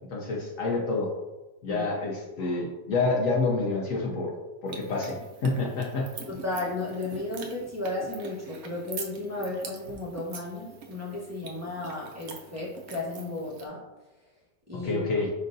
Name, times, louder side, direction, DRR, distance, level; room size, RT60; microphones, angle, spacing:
voice 1, 0.1-1.1 1.6-4.3 4.6-6.1 14.8-15.3, left 3 dB, 65° left, -1 dB, 0.9 m, -28 dB
sound 1, 4.7-13.7, right 5 dB, 85° right, 0.6 m, -44 dB
voice 2, 6.3-13.8 14.7-15.1, left 2 dB, 15° right, -6 dB, 0.6 m, -34 dB
5.3 x 3.7 x 2.6 m, 1.1 s
omnidirectional pair, 1.9 m